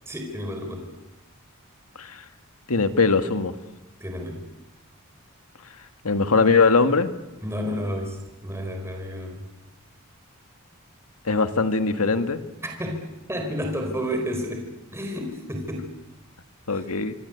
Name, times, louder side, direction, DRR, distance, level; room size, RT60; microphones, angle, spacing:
voice 1, 0.1-0.9 4.0-4.4 7.4-9.4 12.6-14.7 14.9-15.9, equal, 10° right, 3 dB, 4.6 m, -31 dB
voice 2, 2.7-3.5 6.0-7.1 11.3-12.4 16.7-17.1, left 4 dB, 90° left, 8 dB, 1.9 m, -21 dB
26.5 x 23.5 x 8.3 m, 0.99 s
head